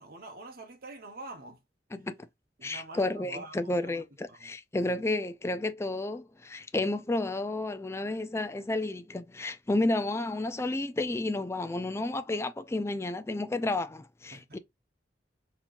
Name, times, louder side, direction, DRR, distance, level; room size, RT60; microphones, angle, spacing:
voice 1, 0.0-1.6 2.6-4.5 4.9-5.0 14.3-14.6, right 2 dB, 55° right, 1.1 m, -46 dB
voice 2, 2.6-14.6, left 2 dB, 15° left, 0.4 m, -31 dB
4.4 x 2.9 x 2.5 m
head